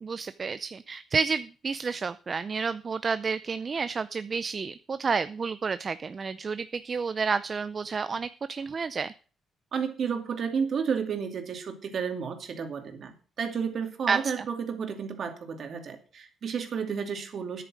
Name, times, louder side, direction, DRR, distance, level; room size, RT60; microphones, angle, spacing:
voice 1, 0.0-9.1 14.1-14.5, right 5 dB, 40° right, 14 dB, 0.5 m, -30 dB
voice 2, 9.7-17.6, right 6 dB, 55° right, 6 dB, 2.4 m, -32 dB
10.0 x 8.9 x 6.3 m, 0.39 s
cardioid pair, 90°, 0 cm